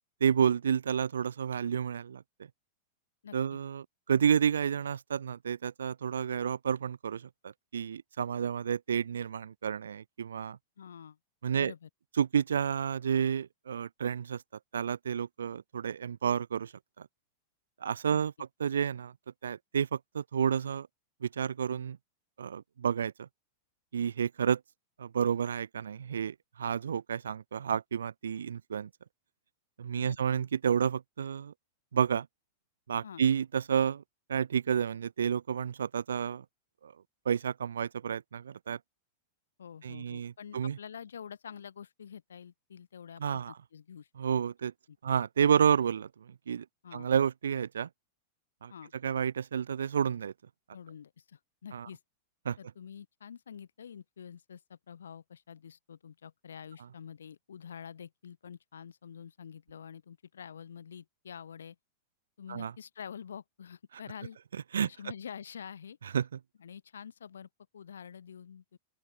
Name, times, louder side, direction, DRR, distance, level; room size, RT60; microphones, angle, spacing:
voice 1, 0.2-2.2 3.3-10.6 11.4-11.7 12.2-14.4 14.7-16.7 17.0-17.1 17.8-18.3 18.6-19.1 19.4-20.9 21.2-22.0 22.4-23.3 23.9-24.6 25.0-28.9 29.8-31.5 31.9-32.3 32.9-34.0 34.3-36.4 36.8-36.9 37.2-38.8 39.8-40.8 43.2-43.5 44.2-44.7 45.0-46.6 46.9-47.9 48.6-48.7 49.0-50.3 51.7-51.9 52.4-52.6 62.5-62.7 64.7-64.9 66.1-66.3, right 8 dB, 75° right, 0.8 m, -30 dB
voice 2, 3.2-3.6 10.8-11.2 11.6-11.9 18.0-18.2 29.9-30.2 33.0-33.2 39.6-44.1 44.9-45.2 46.8-47.1 48.7-48.9 50.7-52.0 52.6-61.8 62.4-64.4 64.8-66.0 66.6-68.8, left 7 dB, 75° left, 2.7 m, -47 dB
open air
figure-of-eight pair, 95°, 0 cm